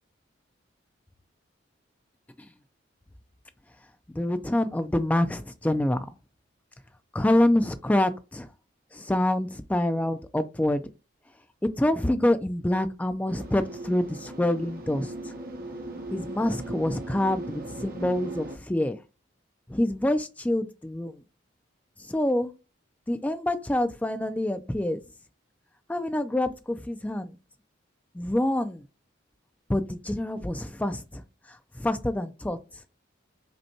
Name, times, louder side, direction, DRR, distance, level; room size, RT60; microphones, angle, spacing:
voice 1, 4.1-6.1 7.1-8.5 8.9-10.8 11.8-15.1 16.1-19.0 19.7-21.2 22.1-22.5 23.1-25.0 25.9-27.3 28.1-28.8 29.7-31.2 31.8-32.6, left 1 dB, 10° left, 0.3 m, -26 dB
sound 1, 13.3-18.6, right 2 dB, 50° right, 0.8 m, -38 dB
5.2 x 2.2 x 2.9 m
head